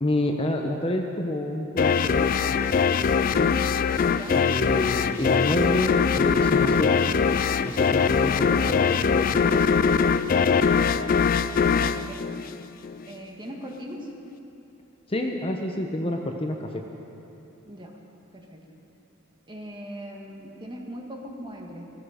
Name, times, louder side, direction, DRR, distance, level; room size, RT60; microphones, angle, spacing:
voice 1, 0.0-3.6 4.3-7.0 7.6-9.6 15.1-16.8, left 1 dB, 25° left, 3 dB, 0.8 m, -29 dB
sound 1, 1.8-13.0, left 6 dB, 40° left, 0.3 m, -22 dB
voice 2, 4.1-4.4 11.6-12.6 13.0-14.1 17.6-18.0 18.3-18.6 19.5-21.9, equal, 20° right, 0 dB, 1.6 m, -40 dB
16.5 x 16.0 x 5.0 m, 2.8 s
head